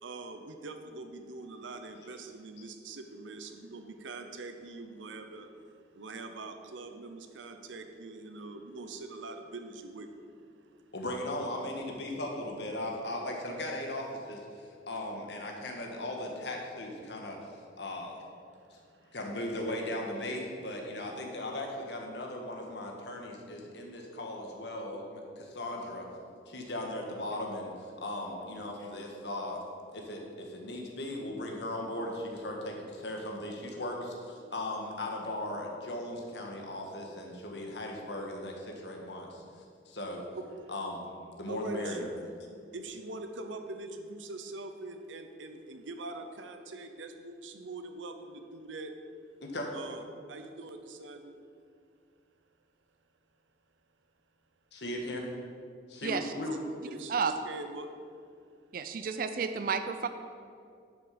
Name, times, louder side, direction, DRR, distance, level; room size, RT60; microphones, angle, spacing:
voice 1, 0.0-10.8 18.5-19.2 40.3-40.7 41.5-42.1 42.7-49.0 49.7-51.3 56.5-57.9, right 2 dB, 85° right, 6 dB, 0.7 m, -43 dB
voice 2, 10.9-17.4 17.8-18.2 18.7-18.8 19.1-26.0 26.5-27.7 28.0-29.6 29.9-34.2 34.5-39.4 39.8-40.2 40.7-41.0 41.4-42.1 49.4-49.7 54.7-55.3 55.9-56.6, left 1 dB, 65° left, 1 dB, 1.5 m, -37 dB
voice 3, 56.0-56.3 57.1-57.3 58.7-60.1, right 5 dB, 50° right, 9 dB, 0.4 m, -31 dB
10.5 x 6.2 x 5.1 m, 2.3 s
head